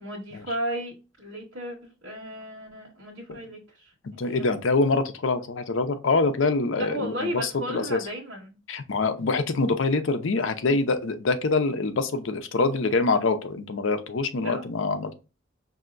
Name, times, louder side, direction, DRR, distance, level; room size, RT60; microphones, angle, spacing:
voice 1, 0.0-3.9 4.2-4.5 6.8-8.6 14.4-14.6, equal, 70° right, 1.2 m, -34 dB
voice 2, 4.0-8.0 8.7-15.1, left 3 dB, 70° left, 0.6 m, -25 dB
5.5 x 2.7 x 2.5 m
head